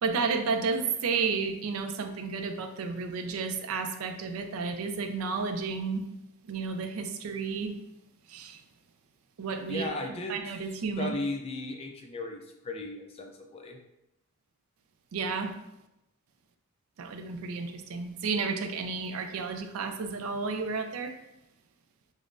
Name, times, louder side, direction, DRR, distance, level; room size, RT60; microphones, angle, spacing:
voice 1, 0.0-6.1 6.5-7.7 8.3-8.6 9.4-11.1 15.1-15.5 17.0-21.1, right 4 dB, 65° right, 7 dB, 0.4 m, -32 dB
voice 2, 9.7-10.5 11.0-13.8, left 2 dB, 25° left, 2 dB, 0.3 m, -36 dB
5.1 x 2.0 x 2.5 m, 0.88 s
head